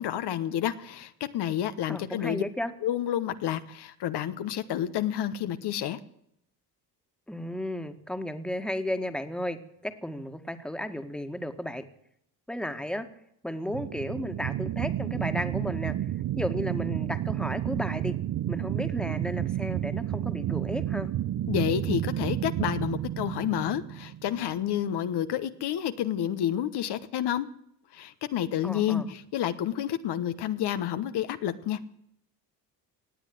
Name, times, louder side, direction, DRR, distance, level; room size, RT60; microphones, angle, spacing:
voice 1, 0.0-2.4 2.8-6.0 21.5-27.5 27.9-31.8, left 10 dB, 70° left, 10 dB, 1.2 m, -29 dB
voice 2, 1.9-2.7 7.3-11.9 12.5-13.1 13.4-16.0 16.4-18.2 18.5-21.1 28.6-29.1, left 1 dB, ahead, 8 dB, 1.8 m, -33 dB
sound 1, 13.7-24.6, right 12 dB, 50° right, 0.7 m, -31 dB
18.5 x 8.3 x 7.8 m, 0.74 s
supercardioid pair, 75°, 42 cm